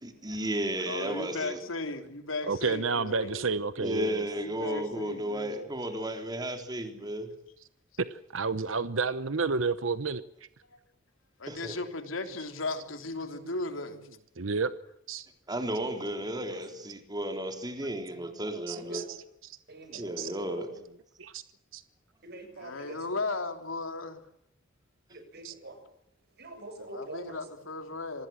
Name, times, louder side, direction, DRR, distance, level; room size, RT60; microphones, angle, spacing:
voice 1, 0.0-1.6 3.8-7.3 11.5-11.8 15.5-19.0 20.0-20.7, right 1 dB, 20° right, 5 dB, 3.8 m, -34 dB
voice 2, 0.9-3.6 4.4-5.7 10.7-10.8 11.4-14.0 22.5-24.2 26.8-28.3, left 2 dB, 85° left, 7 dB, 3.3 m, -36 dB
voice 3, 2.5-4.3 8.0-10.2 14.4-14.7 15.1-15.3 18.2-18.3 18.7-19.6 19.9-20.3 21.2-21.4 21.7-21.8 25.4-25.5, right 4 dB, 80° right, 13 dB, 1.0 m, -31 dB
voice 4, 15.9-16.2 16.5-16.6 18.8-19.0 19.7-20.6 22.2-23.0 25.1-25.8 26.4-27.4, right 2 dB, 55° right, 7 dB, 7.4 m, -44 dB
26.5 x 20.0 x 7.6 m, 0.76 s
head